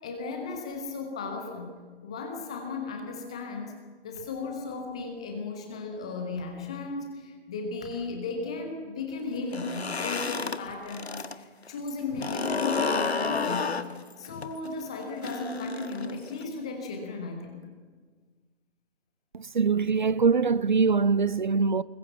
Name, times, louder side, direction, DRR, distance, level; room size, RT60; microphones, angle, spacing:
voice 1, 0.0-3.7 4.0-13.7 14.2-17.6, left 3 dB, 5° left, 0.6 m, -35 dB
sound 1, 9.4-11.4 11.7-16.4, left 4 dB, 65° left, 1.5 m, -31 dB
voice 2, 19.3-21.8, right 5 dB, 45° right, 0.6 m, -23 dB
25.5 x 21.5 x 7.3 m
figure-of-eight pair, 145°, 34 cm